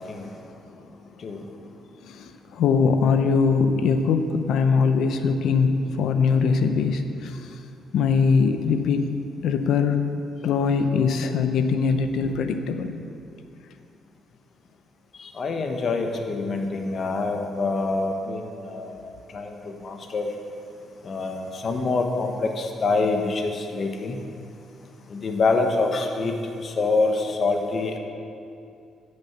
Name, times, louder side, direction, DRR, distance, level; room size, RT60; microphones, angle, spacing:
voice 1, 2.1-7.6 7.9-9.1 9.4-10.0 10.4-12.9, left 5 dB, 75° left, 8 dB, 0.7 m, -22 dB
voice 2, 15.3-19.0 19.3-19.5 19.8-20.3 21.0-24.2 25.1-26.3 26.6-28.0, left 3 dB, 50° left, 4 dB, 1.2 m, -25 dB
10.5 x 6.6 x 5.9 m, 2.6 s
cardioid pair, 90°, 0 cm